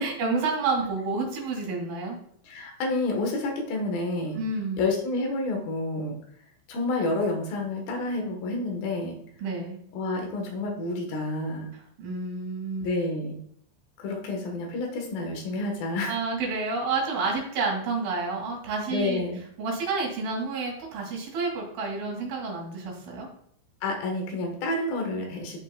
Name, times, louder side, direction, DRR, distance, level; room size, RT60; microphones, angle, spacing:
voice 1, 0.0-2.2 4.3-4.8 9.4-9.8 11.7-12.9 16.1-19.2 19.6-23.3, right 3 dB, 55° right, -1 dB, 3.4 m, -29 dB
voice 2, 2.5-4.4 4.8-6.2 6.7-9.2 9.9-11.7 12.8-13.4 14.0-16.2 18.9-19.4 23.8-25.6, left 2 dB, 65° left, 2 dB, 2.4 m, -29 dB
12.5 x 5.3 x 2.2 m, 0.65 s
omnidirectional pair, 5.5 m